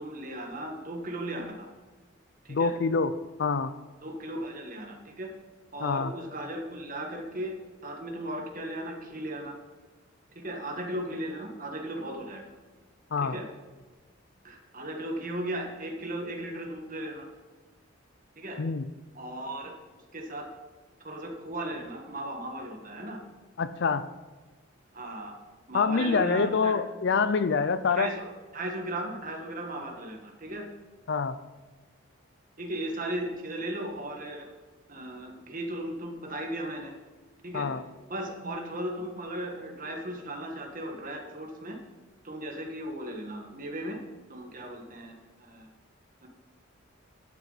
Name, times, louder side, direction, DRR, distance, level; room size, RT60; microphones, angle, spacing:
voice 1, 0.0-1.7 2.4-2.7 4.0-5.4 5.7-9.5 10.3-12.5 13.2-13.5 14.4-17.3 18.4-18.6 19.1-19.8 20.1-20.5 21.0-23.2 24.9-25.4 25.7-26.8 27.5-30.7 32.6-34.5 34.9-36.9 37.4-37.7 38.1-41.8 42.2-44.0 44.3-45.7 46.2-46.3, right 1 dB, 40° right, 2 dB, 1.6 m, -36 dB
voice 2, 2.5-3.8 5.8-6.1 13.1-13.4 18.6-18.8 23.6-24.1 25.7-28.1 31.1-31.4 37.5-37.8, left 5 dB, 55° left, 13 dB, 0.5 m, -26 dB
11.5 x 8.3 x 4.1 m, 1.3 s
head